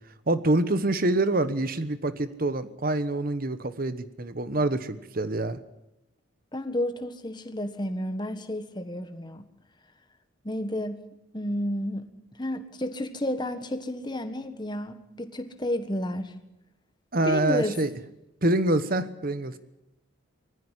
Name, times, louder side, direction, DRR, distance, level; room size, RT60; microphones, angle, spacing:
voice 1, 0.3-5.6 17.1-17.9 18.4-19.6, right 2 dB, 45° right, 12 dB, 1.2 m, -26 dB
voice 2, 6.5-9.4 10.4-11.0 11.3-12.1 12.4-16.3 17.2-17.8, left 1 dB, 20° left, 8 dB, 1.4 m, -31 dB
20.0 x 14.5 x 9.9 m, 0.88 s
head